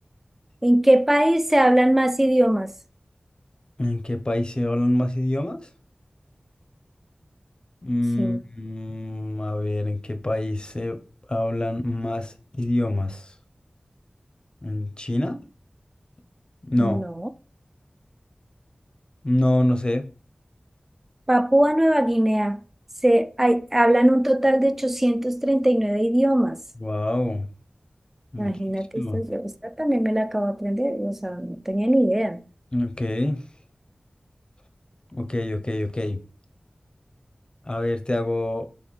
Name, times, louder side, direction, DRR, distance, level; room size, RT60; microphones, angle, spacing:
voice 1, 0.6-2.7 8.2-8.4 16.8-17.3 21.3-22.6 23.0-26.6 28.4-32.4, right 1 dB, 10° right, 0.3 m, -21 dB
voice 2, 3.8-5.7 7.8-11.0 11.3-13.3 14.6-15.4 16.7-17.0 19.2-20.0 26.8-27.5 28.3-28.5 28.9-29.2 32.7-33.4 35.1-36.2 37.6-38.7, left 1 dB, 30° left, 0.6 m, -25 dB
4.1 x 3.1 x 3.1 m
wide cardioid pair, 55°, 3 cm